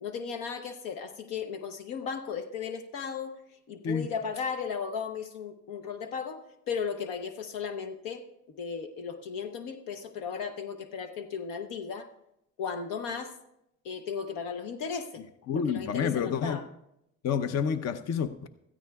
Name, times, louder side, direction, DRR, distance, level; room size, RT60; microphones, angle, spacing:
voice 1, 0.0-3.3 3.7-6.4 6.7-12.1 12.6-13.3 13.8-15.2 15.5-16.7, left 6 dB, 85° left, 7 dB, 0.9 m, -36 dB
voice 2, 15.5-16.6 17.2-18.5, left 7 dB, 50° left, 11 dB, 0.7 m, -29 dB
16.5 x 13.5 x 2.3 m, 0.82 s
cardioid pair, 85°, 32 cm